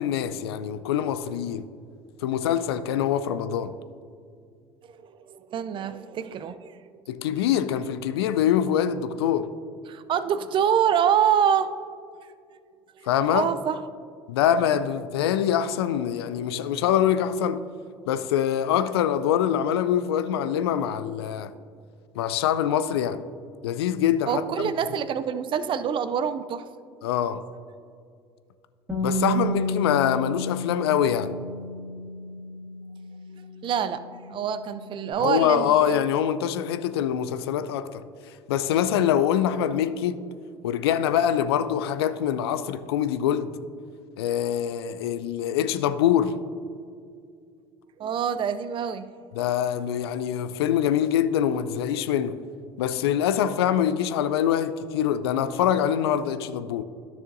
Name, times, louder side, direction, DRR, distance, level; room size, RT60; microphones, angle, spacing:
voice 1, 0.0-1.6 2.2-3.7 7.1-9.5 13.1-13.5 14.3-17.6 18.1-21.5 22.2-23.2 23.6-24.4 27.0-27.4 29.0-31.4 35.2-38.0 38.5-40.3 40.6-43.5 44.2-46.4 49.4-52.4 52.8-56.8, left 9 dB, 75° left, 0.4 m, -24 dB
voice 2, 4.9-6.8 7.3-7.7 9.9-11.7 13.0-13.8 14.4-14.5 24.3-26.7 33.6-34.0 34.3-36.0 48.0-49.1 53.5-53.6, right 8 dB, 40° right, 0.4 m, -26 dB
Bass guitar, 28.9-35.1, equal, 10° right, 2.1 m, -32 dB
12.5 x 6.7 x 2.6 m
figure-of-eight pair, 65°, 13 cm